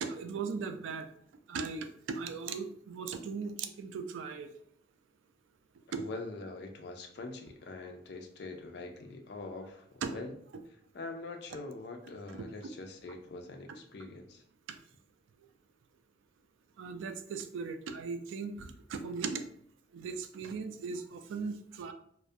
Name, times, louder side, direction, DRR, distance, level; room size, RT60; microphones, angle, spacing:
voice 1, 0.0-1.1 1.5-4.5 5.9-6.0 10.0-10.1 12.4-12.5 16.8-19.4 19.9-21.9, right 5 dB, 85° right, 7 dB, 0.3 m, -38 dB
voice 2, 5.9-10.3 10.9-14.4, left 3 dB, 60° left, 4 dB, 0.4 m, -44 dB
2.3 x 2.1 x 2.5 m, 0.66 s
head